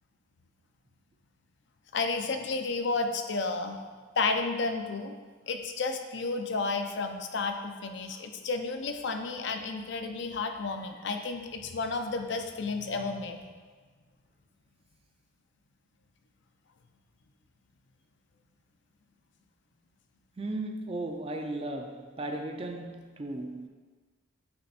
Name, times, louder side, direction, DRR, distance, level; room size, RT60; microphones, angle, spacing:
voice 1, 1.9-3.8 4.2-5.1 5.5-13.4, left 3 dB, 60° left, 0.5 m, -32 dB
voice 2, 20.4-23.7, right 2 dB, 30° right, 0.4 m, -36 dB
8.6 x 3.4 x 4.2 m
head